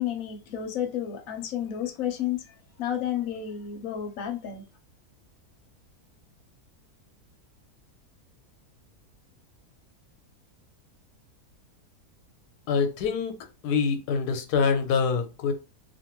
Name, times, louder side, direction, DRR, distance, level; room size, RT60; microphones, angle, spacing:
voice 1, 0.0-4.6, left 10 dB, 65° left, 1.0 m, -31 dB
voice 2, 12.7-13.3 13.6-15.5, left 5 dB, 85° left, 1.2 m, -25 dB
2.6 x 2.5 x 2.9 m
omnidirectional pair, 1.7 m